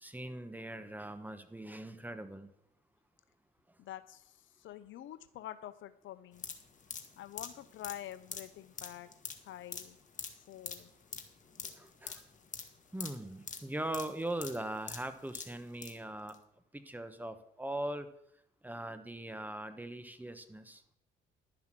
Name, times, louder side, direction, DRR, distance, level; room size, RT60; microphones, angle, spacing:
voice 1, 0.0-2.5 11.7-12.2 12.9-16.4 16.7-18.1 18.6-20.8, right 1 dB, 10° right, 10 dB, 1.1 m, -40 dB
voice 2, 3.8-6.5 7.2-9.1 9.4-10.0 10.5-10.9, left 12 dB, 75° left, 13 dB, 0.7 m, -47 dB
sound 1, 6.3-16.0 16.3-16.4, left 6 dB, 40° left, 1.6 m, -45 dB
11.5 x 5.9 x 7.5 m, 0.73 s
cardioid pair, 90°, 20 cm